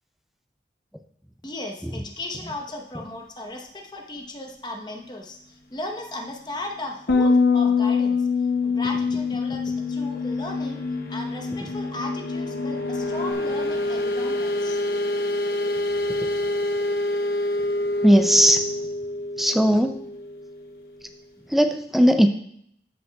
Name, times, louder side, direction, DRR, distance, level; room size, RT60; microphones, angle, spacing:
voice 1, 1.4-8.3 8.6-10.8 11.1-14.8, left 2 dB, 25° left, 2 dB, 0.9 m, -36 dB
Bass guitar, 7.1-13.3, left 5 dB, 80° left, 0.6 m, -24 dB
sound 1, 8.6-21.2, left 1 dB, 55° left, 1.0 m, -28 dB
voice 2, 18.0-18.7 19.4-20.0 21.5-22.3, equal, ahead, 7 dB, 0.3 m, -17 dB
13.5 x 5.2 x 2.3 m, 0.69 s
head